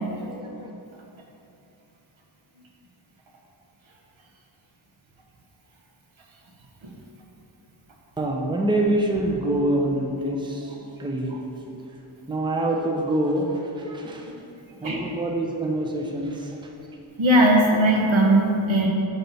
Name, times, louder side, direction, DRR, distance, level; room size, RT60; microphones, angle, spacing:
voice 1, 0.2-0.7 8.2-11.4 12.3-14.3 14.8-16.5, right 1 dB, 10° right, 0 dB, 0.6 m, -26 dB
voice 2, 17.2-18.9, right 1 dB, 70° right, 0 dB, 1.0 m, -18 dB
6.0 x 5.4 x 4.1 m, 2.8 s
wide cardioid pair, 85°, 48 cm